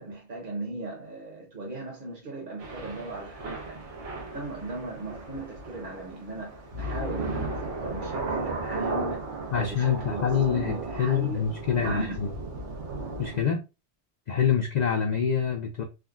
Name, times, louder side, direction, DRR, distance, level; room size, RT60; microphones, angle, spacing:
voice 1, 0.0-3.9 4.3-12.1, right 2 dB, 50° right, 1.0 m, -37 dB
Thunder / Rain, 2.6-13.4, right 2 dB, 85° right, 1.2 m, -35 dB
voice 2, 9.5-12.3 13.2-13.6 14.3-15.8, left 7 dB, 55° left, 0.5 m, -26 dB
3.6 x 2.1 x 2.4 m
omnidirectional pair, 1.1 m